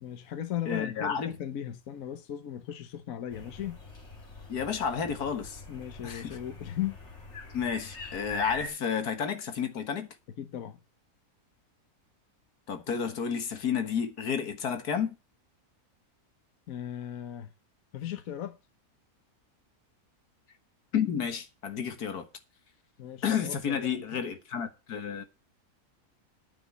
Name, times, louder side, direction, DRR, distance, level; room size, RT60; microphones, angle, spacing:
voice 1, 0.0-3.8 5.7-7.0 10.4-10.8 16.7-17.5 17.9-18.6 23.0-24.2, left 11 dB, 65° left, 1.4 m, -37 dB
voice 2, 0.7-1.3 4.5-5.6 6.0-6.4 7.5-10.1 12.7-15.2 20.9-22.3 23.2-25.2, left 7 dB, 85° left, 2.0 m, -31 dB
sound 1, 3.3-8.7, left 2 dB, 45° left, 2.9 m, -43 dB
9.6 x 6.0 x 8.3 m
omnidirectional pair, 1.6 m